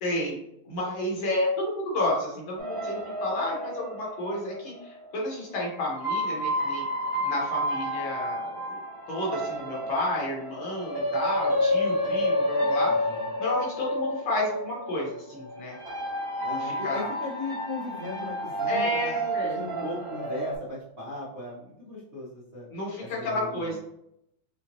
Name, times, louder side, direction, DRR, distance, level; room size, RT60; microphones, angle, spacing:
voice 1, 0.0-0.4 0.7-6.8 7.2-8.8 9.1-12.9 13.4-15.8 16.4-17.1 18.7-19.9 22.7-23.8, left 1 dB, 70° left, -3 dB, 2.1 m, -31 dB
sound 1, 2.6-5.1 5.9-20.6, equal, 30° right, 0.4 m, -30 dB
voice 2, 12.9-13.3 16.4-19.1 19.4-22.7 23.0-23.8, left 2 dB, 45° right, -8 dB, 0.8 m, -37 dB
5.5 x 2.3 x 3.0 m, 0.77 s
omnidirectional pair, 2.4 m